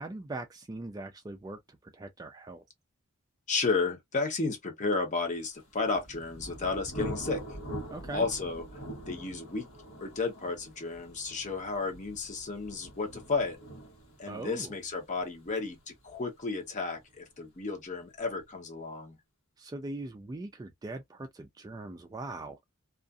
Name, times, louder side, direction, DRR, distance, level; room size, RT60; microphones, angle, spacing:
voice 1, 0.0-2.6 7.9-8.2 14.3-14.7 19.6-22.6, right 2 dB, 20° right, 0.3 m, -41 dB
voice 2, 3.5-7.4 8.1-8.6 9.1-9.7 10.0-13.6 14.2-19.2, left 4 dB, 35° left, 0.8 m, -32 dB
Thunder, 5.6-17.2, right 1 dB, 90° left, 1.1 m, -44 dB
2.4 x 2.4 x 2.3 m
head